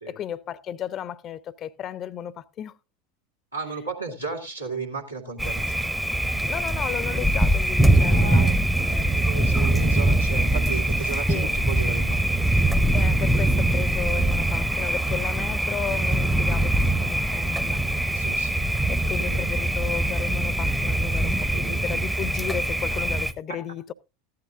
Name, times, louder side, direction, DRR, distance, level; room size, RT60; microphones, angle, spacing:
voice 1, 0.1-2.8 6.5-8.5 8.9-9.2 11.3-11.6 12.9-17.9 18.7-23.9, left 10 dB, 35° left, 0.6 m, -34 dB
voice 2, 3.5-5.9 8.0-12.4 18.1-18.6 19.2-19.5 21.4-21.8 22.9-23.0, right 4 dB, 90° right, 2.2 m, -35 dB
Thunder, 5.4-23.3, right 1 dB, 5° right, 0.7 m, -23 dB
15.0 x 11.5 x 2.4 m
figure-of-eight pair, 80°, 0 cm